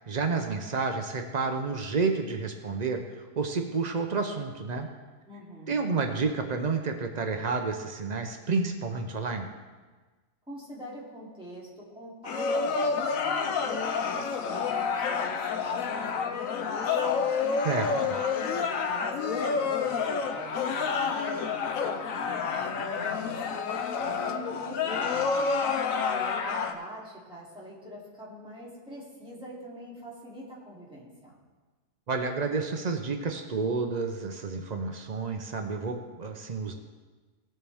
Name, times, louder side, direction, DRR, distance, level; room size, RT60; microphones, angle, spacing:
voice 1, 0.1-3.0 3.4-4.9 5.7-9.5 17.6-17.9 32.1-36.7, right 4 dB, 90° right, 5 dB, 0.3 m, -30 dB
voice 2, 5.3-6.0 10.5-17.2 17.8-23.4 23.9-25.5 26.1-31.4, right 1 dB, 5° right, -7 dB, 2.7 m, -44 dB
sound 1, 12.2-26.7, left 5 dB, 60° left, 1.0 m, -29 dB
17.5 x 7.5 x 3.5 m, 1.3 s
omnidirectional pair, 1.8 m